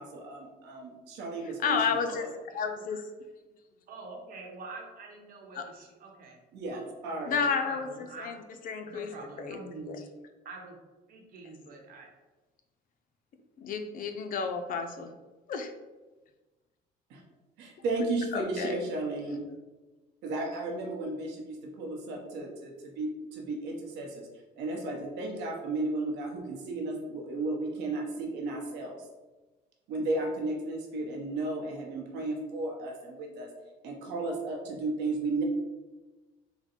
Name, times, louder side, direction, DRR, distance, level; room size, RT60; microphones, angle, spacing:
voice 1, 0.0-2.3 6.5-7.4 17.1-17.2 17.6-19.4 20.2-24.3 24.6-29.0 29.9-33.5 33.8-35.4, right 2 dB, 85° right, 1 dB, 0.9 m, -34 dB
voice 2, 1.6-3.1 5.6-5.7 7.2-7.9 8.2-8.4 8.6-9.1 9.4-9.6 9.9-10.0 13.6-15.1 15.5-15.7 18.3-18.7, left 5 dB, 55° left, 6 dB, 0.5 m, -31 dB
voice 3, 3.9-6.4 6.7-6.9 7.3-8.3 8.8-10.0 10.4-10.8 11.1-12.1, right 3 dB, 60° right, 0 dB, 1.0 m, -45 dB
3.9 x 2.2 x 4.3 m, 1.2 s
cardioid pair, 110°, 17 cm